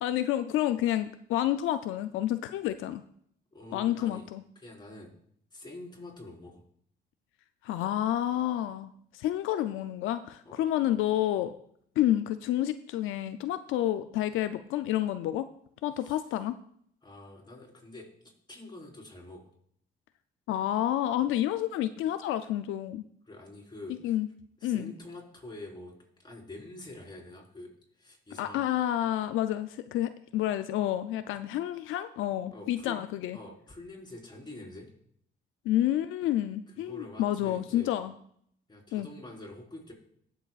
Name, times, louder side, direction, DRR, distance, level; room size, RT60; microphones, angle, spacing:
voice 1, 0.0-3.0 3.7-4.4 7.6-11.5 12.0-15.5 15.8-16.5 20.5-23.1 24.0-24.3 24.6-24.9 28.4-33.4 35.7-38.1 38.9-39.1, left 12 dB, 90° left, 11 dB, 0.5 m, -29 dB
voice 2, 3.5-4.3 4.6-5.1 5.5-6.6 10.4-10.6 16.0-16.2 17.0-18.1 18.5-19.5 23.3-24.2 24.6-25.9 26.2-27.7 28.0-28.6 32.5-33.0 33.3-34.9 36.8-37.9 38.7-39.9, left 2 dB, 20° left, -2 dB, 4.3 m, -46 dB
19.5 x 7.0 x 2.4 m, 0.66 s
cardioid pair, 90°, 20 cm